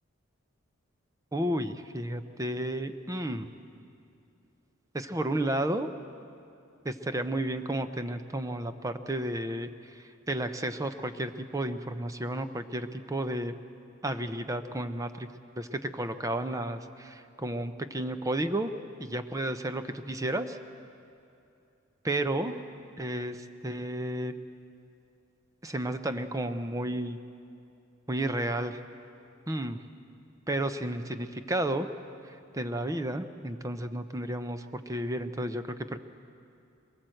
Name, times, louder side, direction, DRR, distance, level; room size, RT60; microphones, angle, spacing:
voice 1, 1.3-3.5 4.9-5.9 6.8-13.5 14.0-15.3 15.6-18.7 19.0-20.6 22.0-22.6 23.0-24.3 25.6-27.2 28.1-28.8 29.5-29.8 30.5-31.9 32.3-36.0, right 1 dB, 15° right, 9 dB, 0.6 m, -32 dB
22.0 x 19.0 x 7.8 m, 2.6 s
head